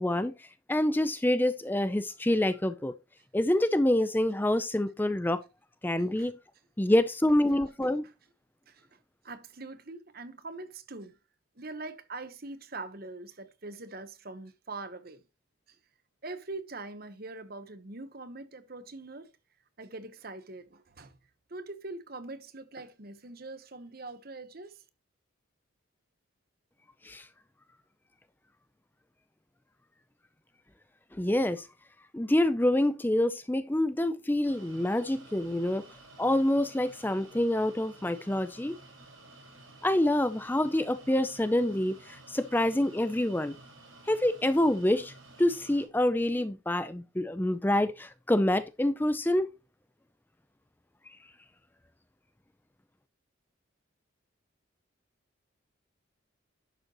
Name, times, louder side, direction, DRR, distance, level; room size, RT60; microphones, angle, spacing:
voice 1, 0.0-2.9 3.3-5.4 5.8-6.3 6.8-8.0 27.0-27.3 31.1-31.7 32.1-35.8 36.2-38.8 39.8-43.6 44.1-45.1 45.4-49.5, left 1 dB, 10° left, 0.4 m, -27 dB
voice 2, 8.7-9.0 9.2-11.2 11.6-15.2 15.7-15.8 16.2-19.3 19.8-21.1 21.5-24.8, right 3 dB, 45° right, 1.0 m, -43 dB
sound 1, 34.4-45.9, right 2 dB, 75° right, 6.3 m, -53 dB
11.0 x 7.4 x 3.0 m
head